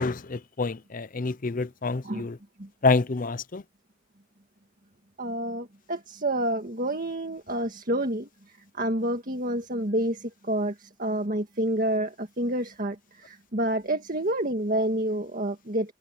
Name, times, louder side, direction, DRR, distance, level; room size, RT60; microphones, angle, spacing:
voice 1, 0.0-2.4 2.8-3.6, left 3 dB, 40° left, 0.6 m, -27 dB
voice 2, 5.2-8.3 8.7-15.9, right 1 dB, 40° right, 1.9 m, -28 dB
head